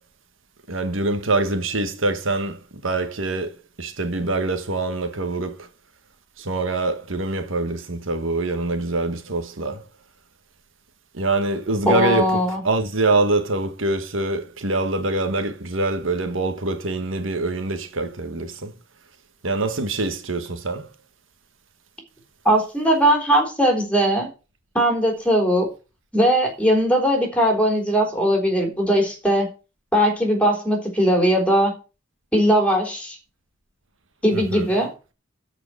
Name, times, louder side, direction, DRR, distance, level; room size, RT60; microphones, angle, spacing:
voice 1, 0.7-2.6 2.8-3.5 3.8-5.6 6.4-9.8 11.2-12.3 12.6-18.7 19.4-20.8 34.3-34.7, right 2 dB, 85° right, 1.5 m, -24 dB
voice 2, 11.8-12.6 22.5-24.3 24.7-25.7 26.1-29.5 29.9-31.8 32.3-33.2 34.2-34.9, equal, 5° left, 3.7 m, -19 dB
13.5 x 5.0 x 6.3 m
head